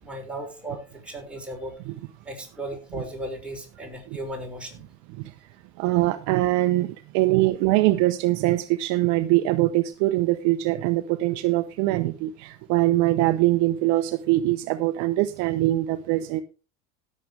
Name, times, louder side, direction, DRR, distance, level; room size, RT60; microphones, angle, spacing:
voice 1, 0.0-1.7 2.2-4.8 7.9-8.0, right 1 dB, 5° right, -1 dB, 6.0 m, -36 dB
voice 2, 5.8-16.4, right 17 dB, 60° right, 10 dB, 0.9 m, -23 dB
17.0 x 7.7 x 3.4 m, 0.32 s
supercardioid pair, 100°, 32 cm